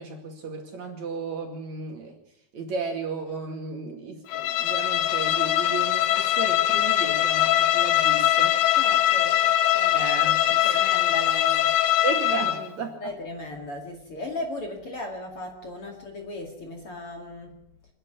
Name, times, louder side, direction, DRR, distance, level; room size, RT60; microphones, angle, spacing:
voice 1, 0.0-2.1 2.5-8.5 9.9-10.8 12.0-13.0, right 4 dB, 50° right, 3 dB, 3.3 m, -34 dB
Bowed string instrument, 4.3-12.7, left 12 dB, 75° left, 2.5 m, -22 dB
voice 2, 8.7-10.4 10.6-11.7 13.0-17.6, left 1 dB, 40° left, 2 dB, 2.8 m, -37 dB
27.5 x 9.9 x 9.7 m, 0.78 s
omnidirectional pair, 4.6 m